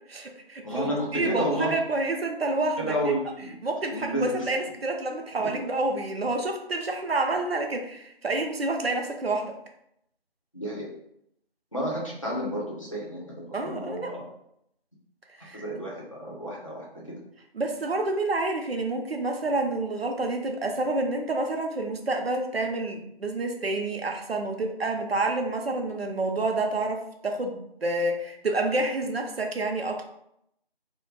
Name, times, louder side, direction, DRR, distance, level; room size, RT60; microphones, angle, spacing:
voice 1, 0.1-3.0 3.6-9.5 13.5-14.1 15.4-15.6 17.5-30.1, right 2 dB, 75° right, 3 dB, 0.6 m, -28 dB
voice 2, 0.6-1.8 2.8-3.5 3.9-4.5 10.5-10.9 11.7-14.2 15.5-17.1, equal, 35° left, -5 dB, 0.6 m, -31 dB
2.2 x 2.1 x 3.1 m, 0.75 s
figure-of-eight pair, 170°, 30 cm